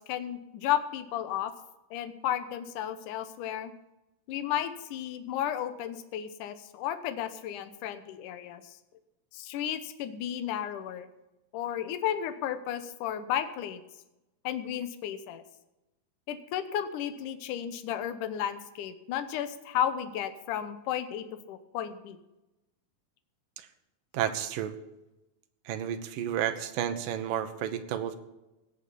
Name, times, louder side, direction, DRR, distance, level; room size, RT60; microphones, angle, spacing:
voice 1, 0.0-1.5 1.9-3.7 4.3-8.8 9.3-11.1 11.5-13.8 14.4-15.4 16.3-22.2, left 10 dB, 70° left, 10 dB, 2.4 m, -33 dB
voice 2, 24.1-24.7 25.7-28.2, right 10 dB, 75° right, 8 dB, 2.6 m, -31 dB
18.0 x 7.1 x 7.0 m, 0.96 s
omnidirectional pair, 4.1 m